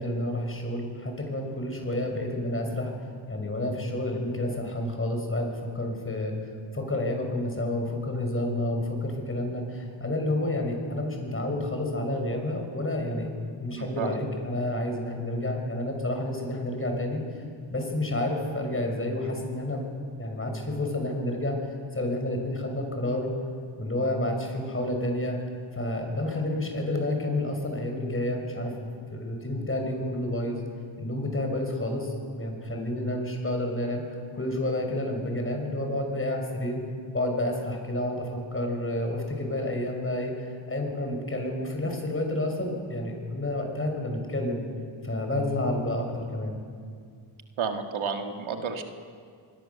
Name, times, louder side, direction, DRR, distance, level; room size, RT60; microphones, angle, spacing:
voice 1, 0.0-2.9 3.3-6.3 6.7-13.3 13.6-17.4 17.7-19.8 20.2-23.3 23.8-25.4 25.7-30.6 31.0-34.0 34.3-36.8 37.1-44.6 45.0-46.6, left 1 dB, 25° left, 3 dB, 5.9 m, -30 dB
voice 2, 13.7-14.2 47.6-48.8, right 6 dB, 80° right, 4 dB, 2.0 m, -31 dB
25.5 x 20.5 x 7.0 m, 2.2 s
cardioid pair, 85°, 48 cm